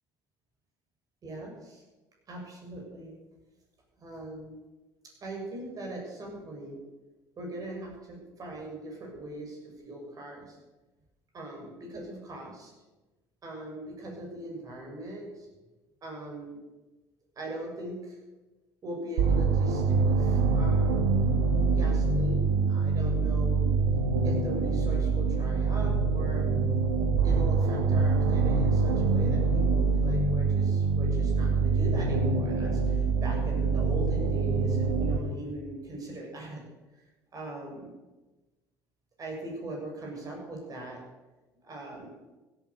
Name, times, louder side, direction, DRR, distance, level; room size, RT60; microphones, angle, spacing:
voice 1, 1.2-1.8 2.3-3.1 4.0-4.6 5.2-6.8 7.4-10.6 11.3-12.7 13.4-15.5 16.0-16.6 17.3-18.2 18.8-21.1 21.7-23.7 24.2-26.5 27.2-36.6 37.3-38.0 39.2-41.0 41.6-42.2, right 1 dB, 45° right, 0 dB, 6.8 m, -40 dB
sound 1, 19.2-35.2, right 4 dB, 85° right, 1.6 m, -25 dB
16.0 x 9.5 x 6.9 m, 1.1 s
supercardioid pair, 80°, 9 cm